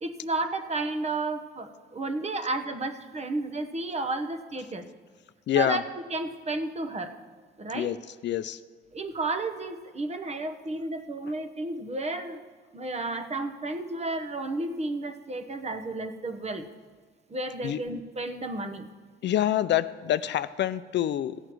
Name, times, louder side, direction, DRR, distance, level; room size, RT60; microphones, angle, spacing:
voice 1, 0.0-4.9 5.5-5.8 6.1-7.2 7.6-7.9 8.9-12.4 12.7-16.7 17.3-18.9, right 2 dB, 35° right, 8 dB, 1.0 m, -32 dB
voice 2, 5.5-5.8 7.7-8.6 17.6-17.8 19.2-21.4, left 11 dB, 65° left, 14 dB, 0.5 m, -26 dB
15.5 x 8.8 x 4.6 m, 1.5 s
cardioid pair, 90°, 20 cm